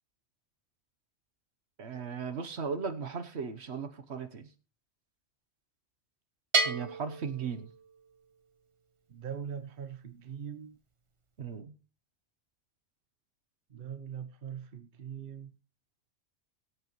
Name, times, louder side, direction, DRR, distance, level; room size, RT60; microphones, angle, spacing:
voice 1, 1.8-4.5 6.6-7.7 11.4-11.7, right 6 dB, 70° right, 1.3 m, -37 dB
Bell, 6.5-8.3, right 3 dB, 30° right, 0.9 m, -32 dB
voice 2, 9.1-10.8 13.7-15.5, right 8 dB, 55° right, 1.1 m, -41 dB
22.0 x 8.1 x 3.1 m
omnidirectional pair, 1.2 m